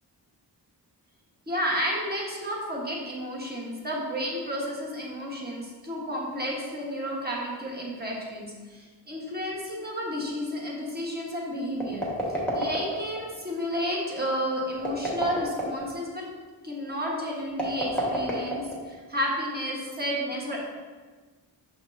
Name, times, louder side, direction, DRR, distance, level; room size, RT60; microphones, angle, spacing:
voice 1, 1.5-12.1 12.5-16.2 16.6-20.6, equal, 25° right, -3 dB, 1.2 m, -31 dB
sound 1, 11.7-13.2 14.7-15.9 17.5-19.0, right 1 dB, 5° left, 1.2 m, -29 dB
6.2 x 6.1 x 2.6 m, 1.4 s
wide cardioid pair, 125°, 42 cm